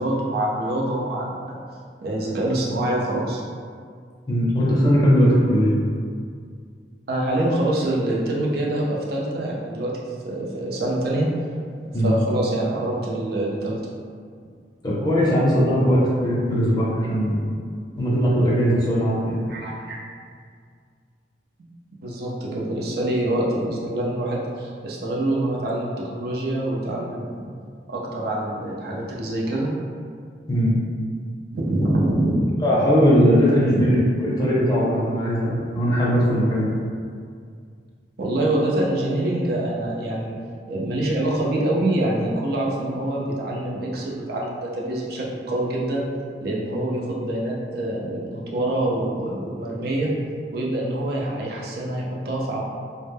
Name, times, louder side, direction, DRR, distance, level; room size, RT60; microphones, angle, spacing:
voice 1, 0.0-1.6 2.0-3.4 7.1-9.9 10.2-11.3 12.0-13.8 19.5-20.0 22.0-27.5 27.9-29.7 31.5-32.4 33.8-33.9 38.2-40.4 40.7-46.1 46.4-50.1 50.5-52.6, right 1 dB, 60° right, -4 dB, 0.5 m, -25 dB
voice 2, 4.3-5.7 11.9-12.1 14.8-17.4 18.0-19.4 30.5-30.8 32.6-36.7, equal, 25° left, -6 dB, 0.5 m, -19 dB
2.1 x 2.0 x 3.2 m, 2.1 s
head